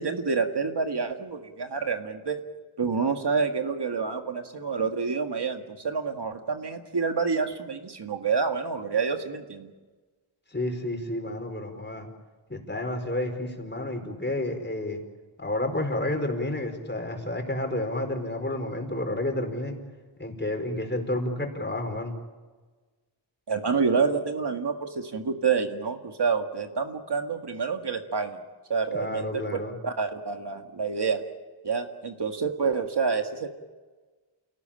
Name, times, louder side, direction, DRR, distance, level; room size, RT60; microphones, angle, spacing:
voice 1, 0.0-2.4 2.8-9.7 23.5-28.4 28.7-29.4 29.8-31.2 31.6-33.5, right 5 dB, 55° right, 5 dB, 1.9 m, -28 dB
voice 2, 10.5-12.1 12.5-15.0 15.4-19.7 20.2-22.1 28.9-29.7, left 1 dB, 20° left, 4 dB, 4.7 m, -30 dB
29.0 x 18.0 x 8.9 m, 1.3 s
wide cardioid pair, 100°, 48 cm